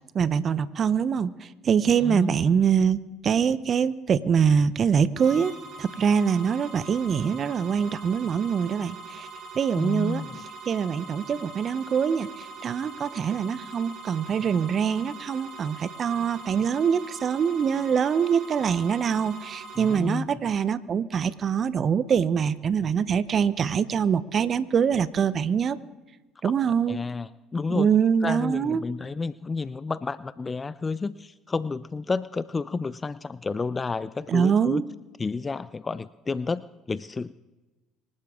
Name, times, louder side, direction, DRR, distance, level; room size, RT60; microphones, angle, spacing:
voice 1, 0.1-3.0 3.2-9.3 9.5-10.2 10.7-25.8 26.4-27.0 27.7-28.8 34.3-34.8, right 7 dB, 45° right, 16 dB, 0.7 m, -24 dB
voice 2, 1.9-2.3 9.8-10.4 19.8-20.5 26.9-27.9 28.2-34.8 35.2-37.3, left 4 dB, 25° left, 17 dB, 0.5 m, -31 dB
sound 1, 5.2-20.0, right 4 dB, 65° right, 2.9 m, -42 dB
25.0 x 12.0 x 3.6 m, 1.1 s
hypercardioid pair, 70°, 0 cm